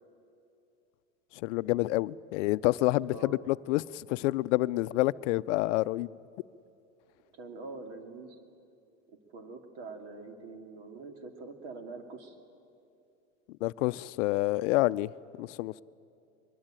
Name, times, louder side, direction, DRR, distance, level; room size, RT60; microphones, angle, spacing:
voice 1, 1.4-6.1 13.6-15.1 15.4-15.7, left 18 dB, 75° left, 0.6 m, -28 dB
voice 2, 7.3-8.4 9.1-12.4, right 3 dB, 60° right, 2.8 m, -44 dB
22.5 x 22.0 x 9.0 m
supercardioid pair, 165°, 37 cm